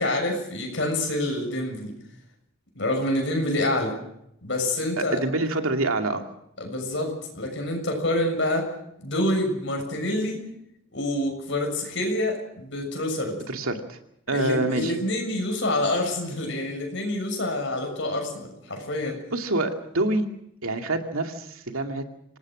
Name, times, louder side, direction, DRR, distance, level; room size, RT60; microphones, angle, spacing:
voice 1, 0.0-1.9 2.7-3.9 4.4-5.2 6.6-8.7 9.0-10.4 10.9-13.4 14.3-19.2, left 1 dB, 60° left, 3 dB, 6.7 m, -27 dB
voice 2, 5.0-6.2 13.5-14.0 14.3-14.9 19.3-20.3 20.6-22.0, right 2 dB, 85° right, 5 dB, 2.5 m, -26 dB
26.0 x 18.5 x 6.3 m, 0.77 s
head